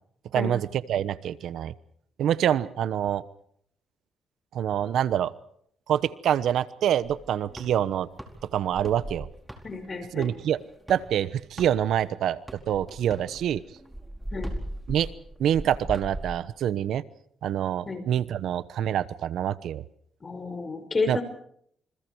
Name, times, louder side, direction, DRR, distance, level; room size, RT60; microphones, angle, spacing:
voice 1, 0.3-1.7 2.2-3.2 4.5-5.3 5.9-8.1 8.5-9.3 10.1-10.6 10.9-12.4 12.7-13.6 14.9-15.1 15.4-17.0 17.4-19.8 21.1-21.2, right 10 dB, 75° right, 16 dB, 1.0 m, -26 dB
sound 1, 7.0-12.1 12.5-16.3, right 1 dB, 10° right, 4.6 m, -39 dB
voice 2, 9.6-10.3 14.3-14.5 17.9-18.1 20.2-21.2, left 4 dB, 30° left, 8 dB, 5.7 m, -31 dB
28.0 x 27.0 x 4.7 m, 0.67 s
cardioid pair, 90°, 0 cm